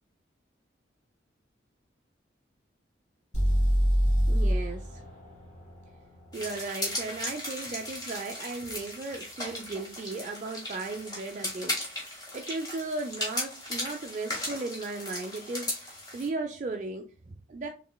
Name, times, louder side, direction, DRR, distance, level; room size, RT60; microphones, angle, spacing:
sound 1, 3.3-7.3, equal, 40° left, 1.8 m, -27 dB
voice 1, 4.3-5.0 6.3-17.7, right 3 dB, 40° right, 4 dB, 0.3 m, -36 dB
sound 2, 6.3-16.3, left 1 dB, 20° left, 1.1 m, -37 dB
3.9 x 3.1 x 2.2 m, 0.37 s
head